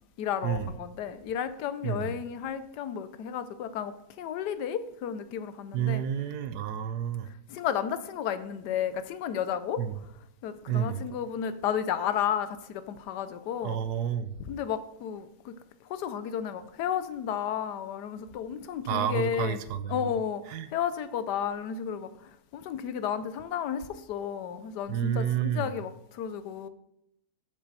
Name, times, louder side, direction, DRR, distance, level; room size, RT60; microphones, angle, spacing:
voice 1, 0.2-6.0 7.5-9.8 10.4-13.8 14.5-15.5 15.9-19.6 19.9-20.4 20.7-22.1 22.5-26.7, left 8 dB, 85° left, 1.3 m, -32 dB
voice 2, 1.8-2.1 5.7-7.3 9.8-9.9 10.7-11.0 13.6-14.3 18.9-20.1 20.5-20.7 24.9-25.7, right 9 dB, 75° right, 1.2 m, -30 dB
7.4 x 5.3 x 6.7 m
omnidirectional pair, 1.7 m